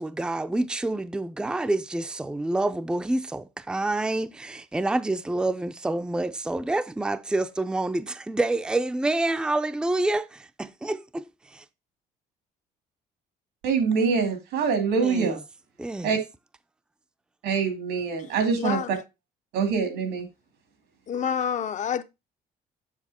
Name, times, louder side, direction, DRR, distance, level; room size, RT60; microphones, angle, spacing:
voice 1, 0.0-11.6 15.0-15.4 15.8-16.1, right 2 dB, 5° right, 0.5 m, -28 dB
voice 2, 13.6-15.4 16.0-16.2 17.4-19.0 19.5-20.3, right 5 dB, 85° right, 2.6 m, -24 dB
voice 3, 18.6-18.9 21.1-22.0, left 8 dB, 45° left, 0.7 m, -27 dB
7.3 x 6.2 x 4.2 m
cardioid pair, 110°, 17 cm